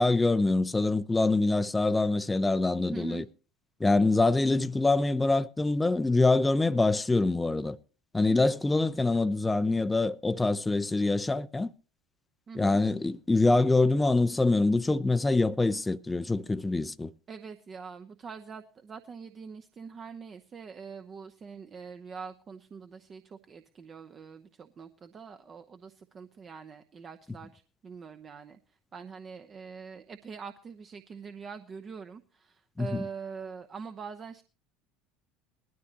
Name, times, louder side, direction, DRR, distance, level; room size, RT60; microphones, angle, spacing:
voice 1, 0.0-3.2 3.8-7.8 8.1-11.7 12.6-17.1 32.8-32.9, left 2 dB, 15° left, 0.5 m, -25 dB
voice 2, 2.8-3.3 12.5-12.8 17.3-34.4, right 5 dB, 35° right, 0.8 m, -44 dB
19.5 x 13.0 x 2.9 m
figure-of-eight pair, 70°, 0 cm